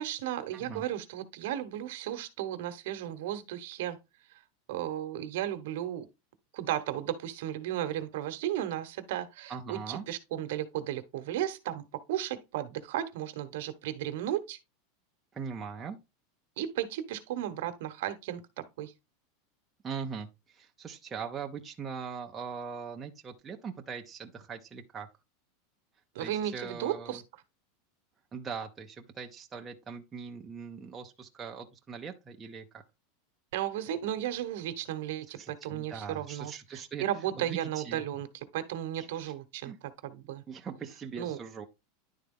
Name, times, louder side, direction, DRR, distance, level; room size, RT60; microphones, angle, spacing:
voice 1, 0.0-4.0 4.3-4.4 4.7-6.1 6.5-14.6 16.6-18.4 18.8-18.9 26.1-27.2 33.5-40.4 41.2-41.4, right 12 dB, 60° right, 1.0 m, -34 dB
voice 2, 0.5-0.8 9.5-10.0 15.3-16.0 19.8-25.1 26.2-27.2 28.3-32.8 35.4-37.0 37.3-38.0 39.2-39.3 39.6-39.8 40.5-41.7, right 6 dB, 15° right, 0.6 m, -41 dB
10.5 x 3.9 x 3.7 m
supercardioid pair, 175°, 0 cm